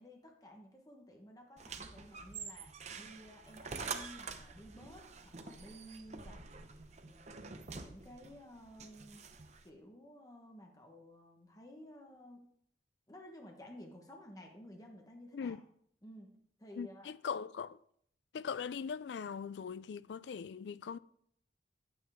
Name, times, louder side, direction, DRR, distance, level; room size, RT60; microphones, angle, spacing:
voice 1, 0.0-6.5 7.0-9.3 9.6-12.4 13.1-15.6 16.0-17.1, equal, 20° left, 1.2 m, -54 dB
sound 1, 1.6-9.7, right 5 dB, 40° right, 0.7 m, -47 dB
voice 2, 16.8-17.8 18.3-21.0, left 6 dB, 70° left, 0.3 m, -40 dB
9.3 x 8.9 x 3.5 m
head